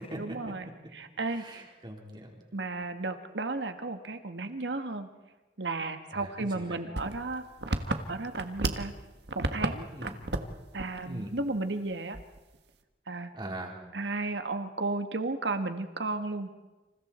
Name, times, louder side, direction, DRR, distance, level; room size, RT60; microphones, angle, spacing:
voice 1, 0.2-1.6 2.5-5.1 5.6-7.4 8.1-8.9 9.3-9.9 10.7-12.2 13.1-13.3 13.9-16.5, right 3 dB, 85° right, 8 dB, 1.7 m, -34 dB
voice 2, 1.3-2.4 6.1-6.8 9.9-10.2 11.0-11.3 13.3-13.8, right 1 dB, 25° right, 0 dB, 4.2 m, -41 dB
sound 1, 7.0-8.9 9.2-9.7 10.0-10.5 10.8-11.0 11.4-11.5 12.1-12.6, right 2 dB, 70° right, 1.6 m, -31 dB
30.0 x 27.5 x 4.5 m, 1.2 s
head